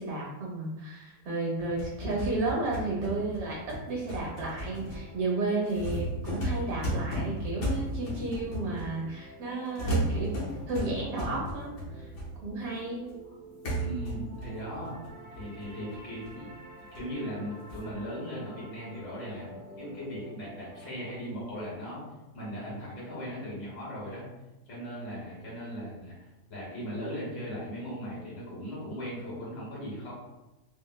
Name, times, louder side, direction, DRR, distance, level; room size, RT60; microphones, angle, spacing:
voice 1, 0.0-10.3 10.7-12.1 12.4-13.1, right 2 dB, 80° right, -3 dB, 1.5 m, -33 dB
sound 1, 1.6-9.1 9.8-12.7 13.1-13.2 13.6-16.5 16.9-17.0 17.7-17.9, equal, 55° left, 0.9 m, -35 dB
sound 2, 4.0-21.2, right 1 dB, 50° right, 0.4 m, -50 dB
voice 2, 13.8-15.0 15.4-16.5 16.9-22.0 22.3-24.3 24.7-30.1, equal, 75° left, -6 dB, 1.9 m, -38 dB
4.2 x 2.1 x 2.2 m, 1.0 s
omnidirectional pair, 1.8 m